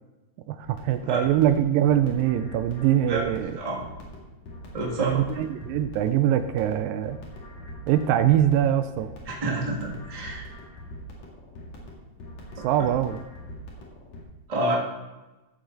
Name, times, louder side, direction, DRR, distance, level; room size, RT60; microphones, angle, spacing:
voice 1, 0.5-3.6 5.0-7.2 7.9-9.1 12.6-13.2, right 11 dB, 80° right, 10 dB, 2.2 m, -23 dB
sound 1, 0.6-14.2, equal, 55° left, 3.1 m, -43 dB
voice 2, 4.7-5.2 9.2-10.5 12.6-12.7 14.5-14.8, right 2 dB, 20° right, -3 dB, 1.0 m, -28 dB
14.0 x 7.7 x 4.0 m, 1.1 s
omnidirectional pair, 4.1 m